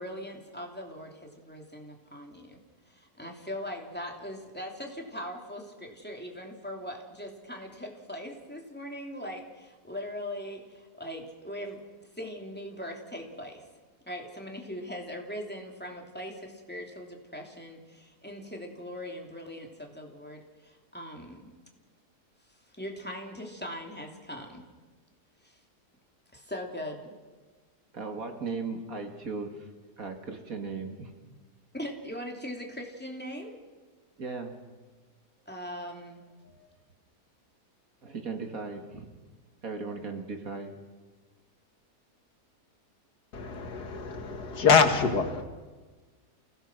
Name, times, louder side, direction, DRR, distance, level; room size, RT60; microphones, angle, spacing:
voice 1, 0.0-2.6 2.9-11.8 12.1-13.6 14.0-21.5 22.7-24.7 25.4-25.6 26.3-27.0 31.7-33.6 35.5-36.2, equal, 5° left, 1 dB, 2.9 m, -40 dB
voice 2, 27.9-29.7 30.0-31.1 34.2-34.7 36.4-36.7 38.0-39.2 39.6-40.8, right 4 dB, 60° right, 5 dB, 2.5 m, -37 dB
voice 3, 43.3-45.4, left 5 dB, 85° left, 6 dB, 2.3 m, -24 dB
29.0 x 17.0 x 6.2 m, 1.3 s
omnidirectional pair, 1.7 m